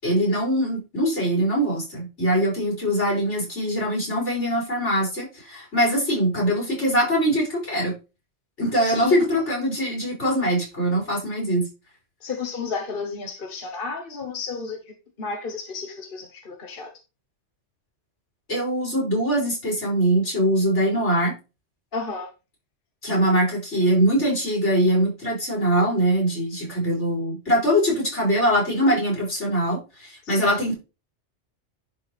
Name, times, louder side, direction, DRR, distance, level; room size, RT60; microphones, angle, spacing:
voice 1, 0.0-8.0 8.6-11.7 18.5-21.3 23.0-30.7, equal, 85° left, 5.4 m, -22 dB
voice 2, 8.8-9.2 12.2-16.9 21.9-22.3 30.2-30.6, left 5 dB, 50° left, 1.4 m, -32 dB
11.0 x 4.6 x 3.2 m
omnidirectional pair, 1.2 m